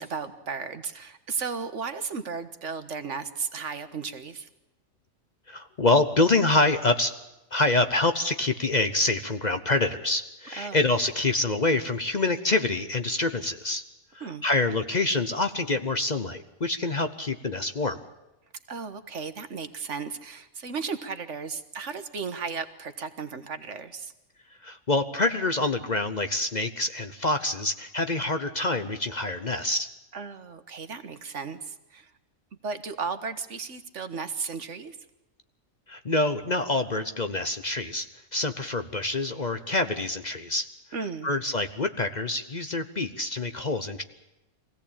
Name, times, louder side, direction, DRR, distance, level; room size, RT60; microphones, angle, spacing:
voice 1, 0.0-4.5 10.6-10.8 14.2-14.4 18.7-24.1 30.1-32.1 32.6-35.0 40.9-41.3, right 5 dB, 65° right, 10 dB, 1.6 m, -35 dB
voice 2, 5.5-7.2 7.5-13.8 14.1-18.0 24.6-29.9 35.9-40.7 41.2-44.0, left 2 dB, 35° left, 9 dB, 0.9 m, -26 dB
24.0 x 16.5 x 8.7 m, 0.97 s
omnidirectional pair, 1.4 m